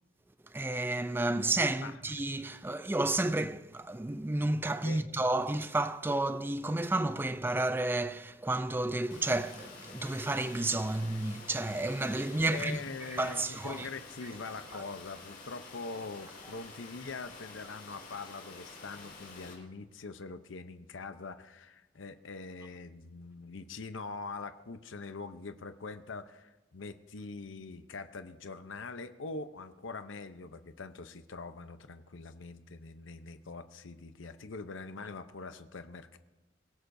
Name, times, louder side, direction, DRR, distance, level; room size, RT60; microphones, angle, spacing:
voice 1, 0.5-12.8 13.1-13.9, right 2 dB, 10° right, 0.4 m, -31 dB
Water, 9.1-19.5, left 3 dB, 50° left, 4.5 m, -49 dB
voice 2, 12.4-36.2, left 4 dB, 75° left, 0.7 m, -43 dB
24.5 x 16.0 x 2.7 m
head